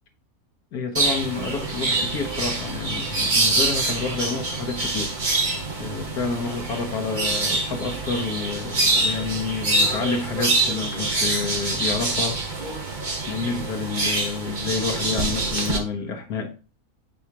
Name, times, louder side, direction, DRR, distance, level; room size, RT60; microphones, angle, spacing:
voice 1, 0.7-5.1 5.8-12.7 13.3-16.5, left 5 dB, 85° left, 1.5 m, -29 dB
sound 1, 0.9-15.8, right 2 dB, 30° right, 1.6 m, -25 dB
9.6 x 4.8 x 2.9 m
omnidirectional pair, 1.5 m